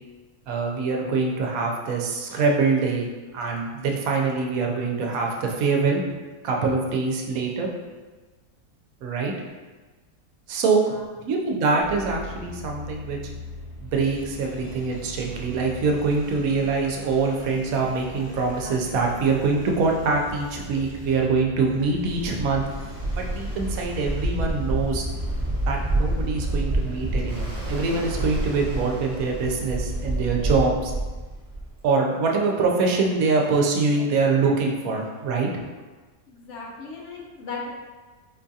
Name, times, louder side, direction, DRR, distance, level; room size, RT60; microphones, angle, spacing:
voice 1, 0.5-3.1 3.3-6.0 6.4-7.7 9.0-9.3 10.5-10.9 11.3-13.2 13.8-22.6 23.2-25.0 25.7-30.9 31.8-35.5, right 4 dB, 80° right, 0 dB, 1.0 m, -24 dB
sound 1, 11.8-30.3, left 1 dB, 20° left, 0.7 m, -40 dB
Ocean, 21.9-31.8, right 1 dB, 15° right, 0.6 m, -28 dB
voice 2, 36.3-37.7, left 4 dB, 65° left, -2 dB, 0.8 m, -37 dB
4.3 x 2.3 x 2.6 m, 1.3 s
omnidirectional pair, 1.5 m